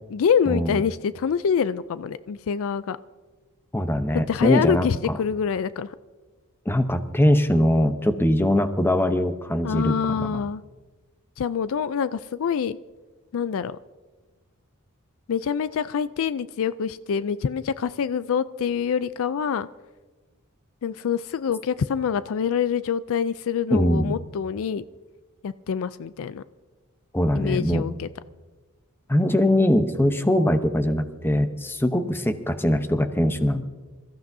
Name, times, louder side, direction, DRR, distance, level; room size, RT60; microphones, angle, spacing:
voice 1, 0.1-3.0 4.1-6.0 9.6-10.6 11.4-12.8 13.3-13.8 15.3-19.7 20.8-24.8 25.4-26.4 27.3-28.1, left 7 dB, 65° left, 15 dB, 0.4 m, -25 dB
voice 2, 3.7-4.9 6.7-10.4 23.7-24.1 27.1-27.9 29.1-33.6, left 1 dB, 10° left, 9 dB, 0.8 m, -22 dB
27.0 x 14.5 x 2.7 m, 1.3 s
head